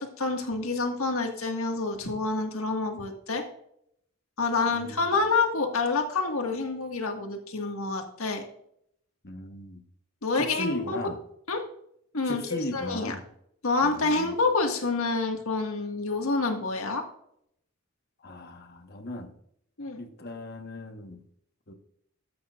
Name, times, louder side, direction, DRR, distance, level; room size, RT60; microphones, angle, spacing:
voice 1, 0.0-3.4 4.4-8.4 10.2-11.0 11.5-11.6 12.1-12.4 12.7-13.1 13.6-17.0 19.8-20.0, left 3 dB, 90° left, 3 dB, 1.7 m, -27 dB
voice 2, 4.7-5.0 9.2-9.8 10.4-11.2 12.2-13.2 13.8-14.3 18.2-19.3 20.0-21.2 21.7-21.8, left 1 dB, 50° left, 6 dB, 1.2 m, -37 dB
13.5 x 8.5 x 2.5 m, 0.71 s
head